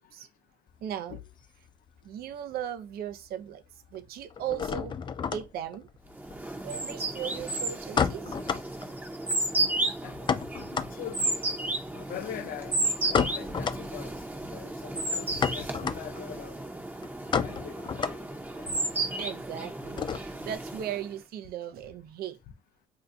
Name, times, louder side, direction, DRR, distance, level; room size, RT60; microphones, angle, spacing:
sound 1, 0.7-2.3 2.6-3.3 3.5-20.6, left 6 dB, 30° left, 0.4 m, -33 dB
voice 1, 0.8-1.2 2.0-3.6 3.9-5.0 5.3-5.9 6.6-8.5 17.3-17.5 18.9-22.4, right 10 dB, 65° right, 0.5 m, -37 dB
sound 2, 6.2-21.1, right 2 dB, 10° right, 0.7 m, -33 dB
voice 2, 10.9-11.4 11.9-12.7 13.1-14.1 14.5-16.7 17.4-18.3 18.6-18.7, left 10 dB, 60° left, 0.7 m, -41 dB
2.6 x 2.3 x 3.8 m
cardioid pair, 110°, 17 cm